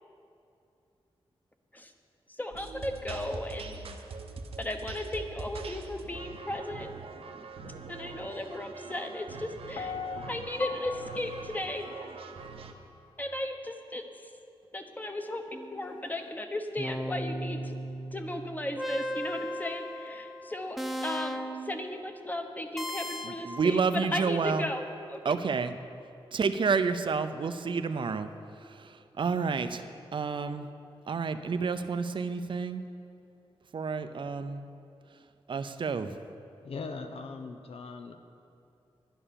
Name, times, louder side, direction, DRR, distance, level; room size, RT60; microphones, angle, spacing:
voice 1, 2.3-3.8 4.6-6.9 7.9-10.0 10.3-12.1 13.2-14.3 14.7-17.8 18.1-25.4, left 1 dB, 15° left, 5 dB, 1.1 m, -36 dB
sound 1, 2.5-12.7, right 3 dB, 75° right, 1.0 m, -43 dB
Piano, 9.8-12.8 13.3-13.4, left 5 dB, 50° left, 0.5 m, -41 dB
sound 2, 15.5-16.0 16.8-21.8 22.8-23.6, equal, ahead, 0.8 m, -37 dB
voice 2, 23.2-24.7 25.2-25.7 26.3-28.3 28.6-30.7 31.1-32.8 33.7-34.6 35.5-36.2, right 5 dB, 55° right, 10 dB, 0.6 m, -30 dB
voice 3, 36.6-38.2, left 4 dB, 75° left, 7 dB, 0.9 m, -40 dB
11.0 x 10.0 x 7.0 m, 2.7 s
cardioid pair, 80°, 10 cm